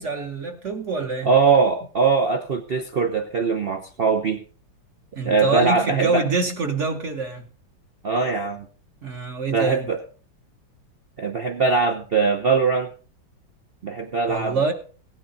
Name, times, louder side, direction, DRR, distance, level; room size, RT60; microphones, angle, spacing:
voice 1, 0.0-1.3 5.1-7.5 9.0-9.9 14.3-14.7, right 4 dB, 45° right, 1.1 m, -25 dB
voice 2, 1.2-4.4 5.3-6.2 8.0-8.7 9.5-10.0 11.2-12.9 13.8-14.7, right 4 dB, 80° right, 0.5 m, -21 dB
16.5 x 9.5 x 3.9 m
omnidirectional pair, 2.1 m